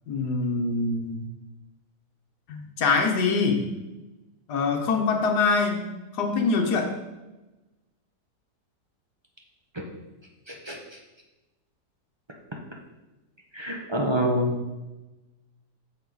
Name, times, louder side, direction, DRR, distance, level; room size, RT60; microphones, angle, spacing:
voice 1, 0.1-1.3 2.5-3.6 4.5-5.9 6.1-6.9, left 4 dB, 70° left, 3 dB, 1.6 m, -24 dB
voice 2, 10.5-10.8 13.5-14.6, equal, 25° right, 0 dB, 0.5 m, -26 dB
7.5 x 6.7 x 4.0 m, 1.1 s
omnidirectional pair, 1.8 m